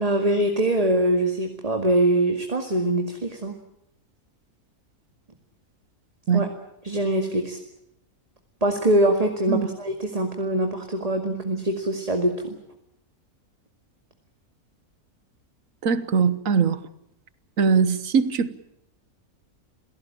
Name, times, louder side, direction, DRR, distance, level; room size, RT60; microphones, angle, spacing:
voice 1, 0.0-3.5 6.3-6.5 6.8-7.6 8.6-12.5, right 1 dB, 25° right, 2.1 m, -23 dB
voice 2, 15.8-16.8 17.6-18.5, right 5 dB, 65° right, 1.6 m, -21 dB
27.5 x 17.0 x 8.8 m
omnidirectional pair, 1.5 m